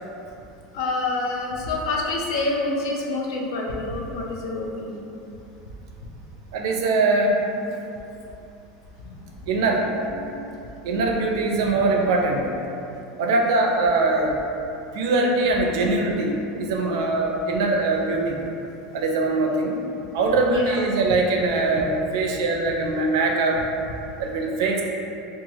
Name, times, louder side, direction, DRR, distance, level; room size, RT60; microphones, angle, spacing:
voice 1, 0.7-5.0 10.2-10.3 20.5-20.8, left 2 dB, 85° left, -1 dB, 0.4 m, -27 dB
voice 2, 6.5-7.4 9.5-9.8 10.8-12.5 13.2-14.4 14.9-18.4 18.9-19.8 20.1-23.6 24.2-24.8, right 2 dB, 70° right, 0 dB, 0.4 m, -22 dB
2.8 x 2.3 x 2.9 m, 2.7 s
supercardioid pair, 175°, 3 cm